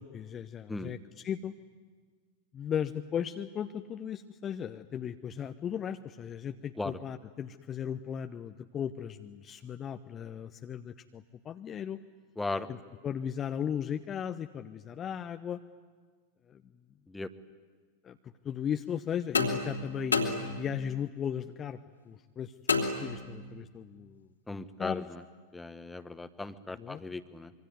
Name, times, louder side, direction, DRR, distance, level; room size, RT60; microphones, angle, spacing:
voice 1, 0.0-1.5 2.5-12.0 12.7-12.8 13.0-15.6 16.5-16.6 18.0-21.8 22.1-25.1 26.7-27.0, left 8 dB, 25° left, 7 dB, 0.8 m, -37 dB
voice 2, 12.4-12.7 17.1-17.3 24.5-25.2 25.5-27.5, left 2 dB, 10° left, 12 dB, 1.3 m, -37 dB
sound 1, 19.3-21.0 22.7-23.6, left 4 dB, 75° left, 3.2 m, -31 dB
26.0 x 24.0 x 9.6 m, 1.5 s
figure-of-eight pair, 90°, 0 cm